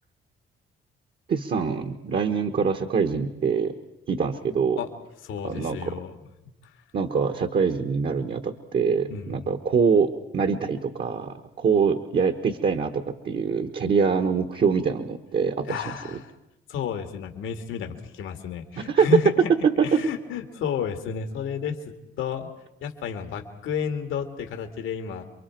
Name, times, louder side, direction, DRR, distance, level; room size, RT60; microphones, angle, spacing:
voice 1, 1.3-3.7 4.1-4.8 5.4-5.9 6.9-15.9 18.8-19.2 19.6-20.0, right 6 dB, 55° right, 5 dB, 1.3 m, -24 dB
voice 2, 5.2-6.2 6.6-6.7 9.1-9.5 15.6-16.3 16.7-19.5 19.8-21.8 22.2-22.5 22.8-25.2, left 7 dB, 85° left, 6 dB, 2.0 m, -31 dB
28.5 x 23.0 x 4.6 m, 0.93 s
cardioid pair, 90°, 20 cm